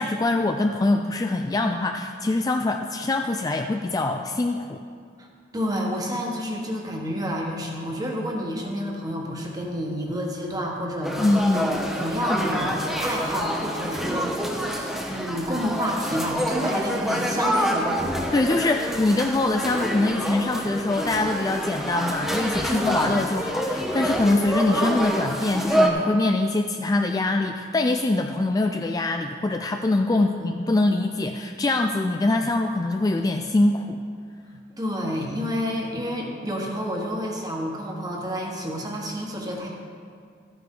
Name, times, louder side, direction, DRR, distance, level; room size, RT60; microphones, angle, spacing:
voice 1, 0.0-4.8 11.2-11.7 18.3-34.0, left 2 dB, 20° left, 4 dB, 0.3 m, -23 dB
voice 2, 5.5-11.2 11.5-18.1 22.7-23.1 30.1-30.5 34.7-39.7, equal, 20° right, -1 dB, 1.4 m, -29 dB
sound 1, 11.0-25.9, equal, ahead, 0.9 m, -27 dB
13.0 x 9.4 x 3.8 m, 2.2 s
head